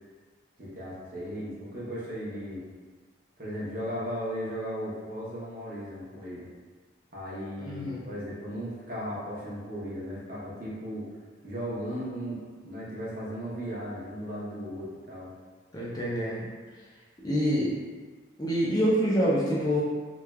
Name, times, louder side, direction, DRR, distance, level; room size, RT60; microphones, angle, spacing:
voice 1, 0.6-2.6 3.4-6.5 7.1-11.1 11.4-15.3, equal, 50° right, -7 dB, 0.7 m, -36 dB
voice 2, 7.6-8.0 15.7-16.4 17.2-17.7 18.4-19.8, equal, 20° left, -6 dB, 0.4 m, -26 dB
3.1 x 2.2 x 2.2 m, 1.5 s
head